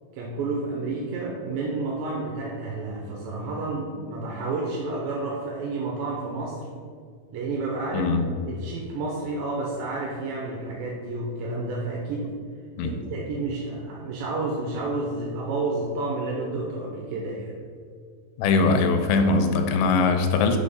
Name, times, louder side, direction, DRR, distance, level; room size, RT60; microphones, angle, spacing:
voice 1, 0.1-6.7 7.3-8.1 8.4-12.3 12.8-17.5, right 3 dB, 80° right, -2 dB, 2.3 m, -30 dB
voice 2, 7.9-8.2 12.8-12.9 18.4-20.6, left 4 dB, 85° left, 6 dB, 2.4 m, -21 dB
5.4 x 4.4 x 5.2 m, 2.1 s
omnidirectional pair, 4.3 m